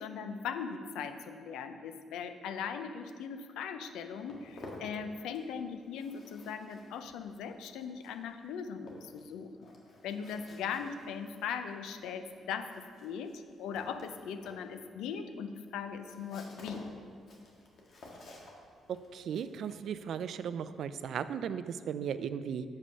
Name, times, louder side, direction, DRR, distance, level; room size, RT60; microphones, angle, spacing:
voice 1, 0.0-9.7 10.0-16.9, left 6 dB, 90° left, 9 dB, 0.5 m, -39 dB
Walk footsteps, 3.8-5.6 5.8-21.2, left 2 dB, 60° left, 1.4 m, -53 dB
voice 2, 19.1-22.6, right 8 dB, 70° right, 13 dB, 0.3 m, -36 dB
7.3 x 5.1 x 5.5 m, 2.1 s
cardioid pair, 90°, 0 cm